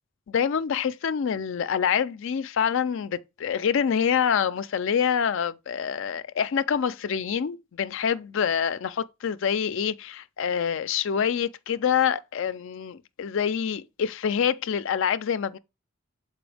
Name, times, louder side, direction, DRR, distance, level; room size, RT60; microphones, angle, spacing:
voice 1, 0.3-15.6, left 7 dB, 65° left, 0.4 m, -26 dB
6.9 x 4.4 x 3.4 m
head